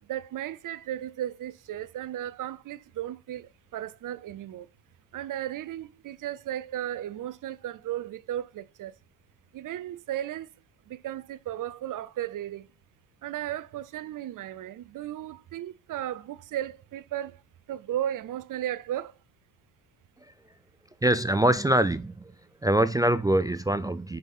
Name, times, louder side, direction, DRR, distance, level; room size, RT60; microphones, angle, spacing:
voice 1, 0.0-4.7 5.1-8.9 9.5-10.5 10.9-12.7 13.2-17.4 17.7-19.2, right 12 dB, 50° right, 0.7 m, -35 dB
voice 2, 21.0-22.3 22.6-24.2, right 1 dB, 10° right, 0.3 m, -24 dB
5.8 x 5.3 x 5.5 m
hypercardioid pair, 60°, 43 cm